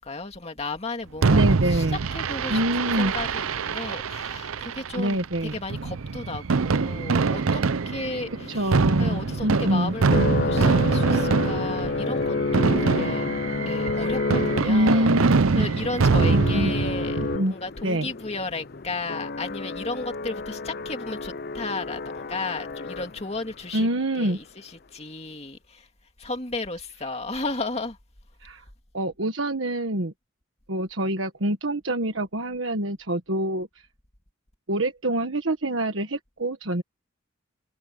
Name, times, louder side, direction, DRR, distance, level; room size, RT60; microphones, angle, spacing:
voice 1, 0.0-1.9 2.1-13.3 13.7-15.1 15.6-23.9 24.2-25.9 26.2-28.0, left 3 dB, 30° left, 2.4 m, -34 dB
Fireworks, 1.2-17.4, right 4 dB, 85° right, 0.6 m, -24 dB
voice 2, 1.3-2.0 2.5-3.1 5.0-5.6 8.5-9.9 14.7-15.7 16.2-16.7 17.2-17.5 17.8-18.1 23.7-24.4 28.4-28.6 28.9-30.1 30.7-33.9 34.7-36.8, right 1 dB, 65° right, 1.5 m, -25 dB
sound 1, 7.4-23.5, left 3 dB, 45° left, 0.6 m, -31 dB
head